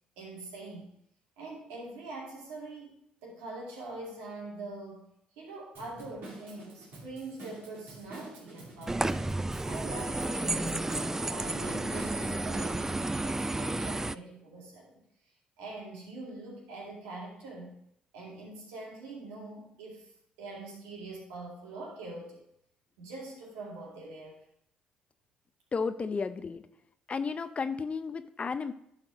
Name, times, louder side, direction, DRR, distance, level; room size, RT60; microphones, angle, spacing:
voice 1, 0.2-0.9 1.4-5.1 5.4-9.1 9.7-11.0 11.3-12.9 13.2-15.0 15.6-17.8 18.1-20.1 20.4-22.4 23.0-24.4, right 2 dB, 90° right, -2 dB, 2.2 m, -43 dB
Drum kit / Drum, 5.7-13.2, right 2 dB, 70° right, 2.5 m, -46 dB
sound 1, 8.9-14.2, right 2 dB, 15° right, 0.3 m, -32 dB
voice 2, 25.7-26.6 27.1-28.7, left 5 dB, 40° left, 11 dB, 0.5 m, -33 dB
11.0 x 4.4 x 5.0 m, 0.72 s
supercardioid pair, 55°, 3 cm